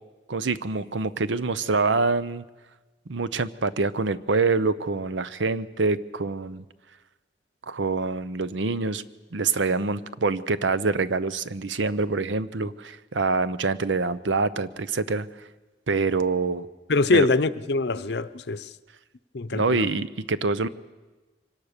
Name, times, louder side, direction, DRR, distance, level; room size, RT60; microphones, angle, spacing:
voice 1, 0.3-2.4 3.1-6.6 7.7-9.0 9.3-15.3 15.9-16.7 17.1-17.3 19.5-20.7, right 3 dB, 90° right, 0.7 m, -25 dB
voice 2, 16.9-18.7 19.3-19.9, left 3 dB, 65° left, 0.7 m, -24 dB
24.5 x 18.0 x 6.7 m
head